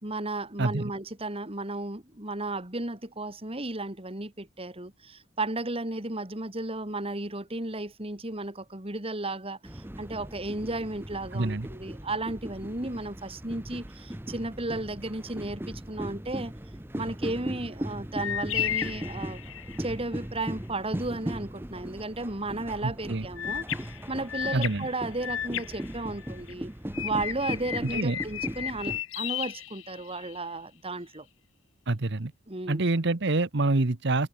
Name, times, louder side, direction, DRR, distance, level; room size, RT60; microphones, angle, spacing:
voice 1, 0.0-16.5 16.9-19.4 19.8-23.7 24.1-26.7 27.0-31.3 32.5-32.8, right 2 dB, 30° right, 2.9 m, -34 dB
sound 1, 9.6-29.0, right 1 dB, 10° right, 1.0 m, -38 dB
voice 2, 11.3-11.7 22.8-23.2 24.5-24.9 27.8-28.2 31.9-32.3 32.7-34.3, right 2 dB, 60° right, 1.1 m, -26 dB
sound 2, 18.2-19.9 23.4-26.5 26.9-30.4, left 11 dB, 75° left, 0.7 m, -34 dB
head